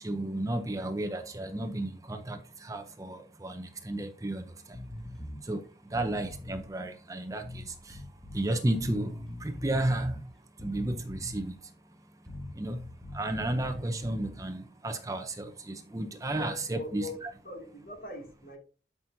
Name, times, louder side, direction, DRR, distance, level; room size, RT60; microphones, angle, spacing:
voice 1, 0.0-4.4 5.5-5.6 5.9-7.4 8.3-9.1 9.4-10.1 10.6-11.5 12.6-12.8 13.1-17.3, right 1 dB, 20° right, 0.6 m, -32 dB
sound 1, 4.7-5.4 5.9-6.6 7.4-8.4 8.8-10.2 10.6-11.5 12.3-14.3, left 1 dB, 5° left, 2.0 m, -42 dB
voice 2, 16.4-18.6, left 2 dB, 55° left, 2.5 m, -42 dB
11.5 x 6.0 x 2.7 m
head